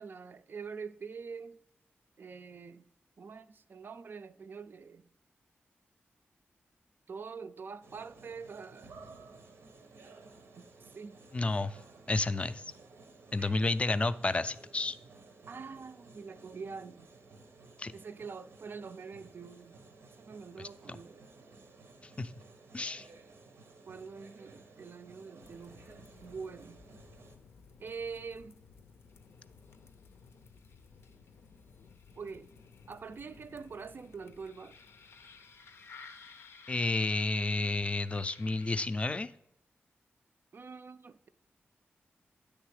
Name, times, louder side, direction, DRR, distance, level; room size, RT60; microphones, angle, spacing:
voice 1, 0.0-1.6 2.2-2.9 3.2-5.1 7.1-8.9 10.6-11.2 13.4-13.5 15.5-17.1 17.9-19.8 20.2-21.2 23.9-26.8 27.8-28.6 32.2-32.5 32.9-34.8 40.5-41.3, right 5 dB, 55° right, 0.4 m, -45 dB
sound 1, 7.8-27.4, right 3 dB, 90° right, 0.8 m, -55 dB
voice 2, 11.3-11.8 12.1-12.7 13.3-15.0 17.8-17.9 22.2-22.3 22.7-23.1 36.7-39.3, left 2 dB, 30° left, 0.3 m, -31 dB
sound 2, 25.4-39.3, left 5 dB, 85° left, 0.5 m, -56 dB
8.9 x 3.4 x 4.8 m
wide cardioid pair, 90°, 4 cm